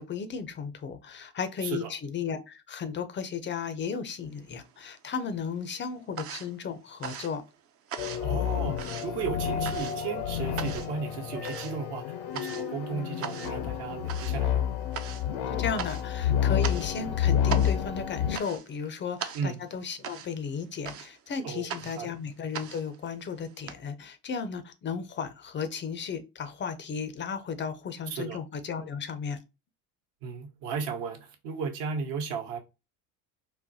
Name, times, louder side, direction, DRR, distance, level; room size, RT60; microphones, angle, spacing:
voice 1, 0.0-7.4 15.6-29.4, left 6 dB, 25° left, 0.5 m, -35 dB
sound 1, 4.4-5.2 5.5-23.7, right 8 dB, 30° right, 0.5 m, -41 dB
sound 2, 8.0-18.4, left 9 dB, 65° left, 0.6 m, -29 dB
voice 2, 8.2-12.0 12.3-14.6 19.3-19.6 21.4-22.1 28.1-28.4 30.2-32.6, right 5 dB, 60° right, 1.0 m, -35 dB
3.9 x 2.1 x 2.7 m
hypercardioid pair, 70°, 48 cm